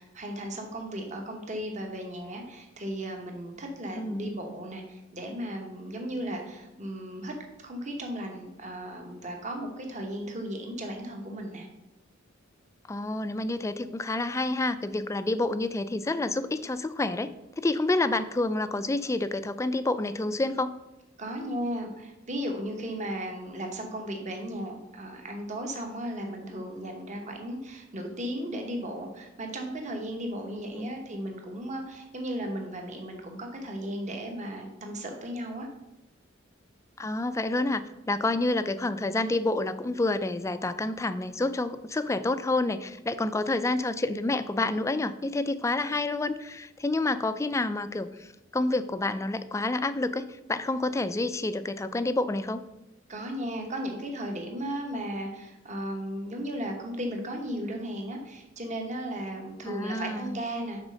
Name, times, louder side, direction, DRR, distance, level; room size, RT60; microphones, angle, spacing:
voice 1, 0.0-7.3 7.6-11.7 21.2-35.7 53.1-60.8, equal, 40° right, 3 dB, 1.1 m, -35 dB
voice 2, 4.0-4.3 12.9-20.7 30.8-30.9 37.0-52.6 59.6-60.4, left 2 dB, 15° left, 12 dB, 0.3 m, -29 dB
6.2 x 4.2 x 6.2 m, 0.97 s
head